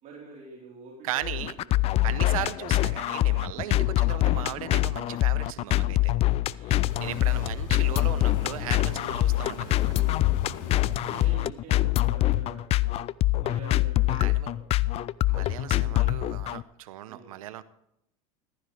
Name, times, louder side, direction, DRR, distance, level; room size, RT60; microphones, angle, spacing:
voice 1, 0.0-1.3 1.6-1.8 3.5-3.7 6.7-8.1 9.9-10.2 11.0-13.0 13.4-14.6 17.1-17.3, right 4 dB, 45° right, -4 dB, 4.1 m, -47 dB
voice 2, 1.0-1.5 2.0-6.1 6.6-10.0 11.0-11.4 14.1-14.5 15.3-17.6, right 13 dB, 85° right, 15 dB, 0.9 m, -37 dB
sound 1, 1.2-16.6, left 16 dB, 35° left, 0.4 m, -25 dB
sound 2, 6.9-11.3, left 5 dB, 65° left, 4.4 m, -38 dB
15.0 x 14.5 x 3.4 m, 0.77 s
supercardioid pair, 115°, 17 cm